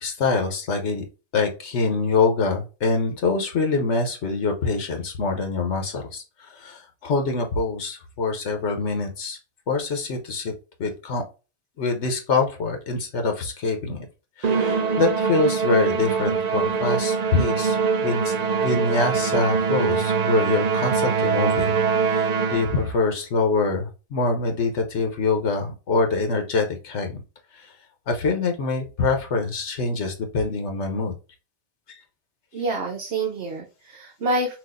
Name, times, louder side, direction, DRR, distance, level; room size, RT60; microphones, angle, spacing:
voice 1, 0.0-1.0 1.3-6.2 6.6-9.4 9.7-10.5 10.8-11.2 11.8-14.0 14.4-17.8 18.0-18.3 18.6-27.2 28.1-31.1, left 3 dB, 80° left, 4 dB, 1.2 m, -25 dB
Musical instrument, 14.4-22.9, right 5 dB, 50° right, 0.5 m, -23 dB
voice 2, 32.5-34.6, right 2 dB, 70° right, 1 dB, 1.3 m, -27 dB
6.1 x 2.6 x 2.5 m, 0.31 s
omnidirectional pair, 1.2 m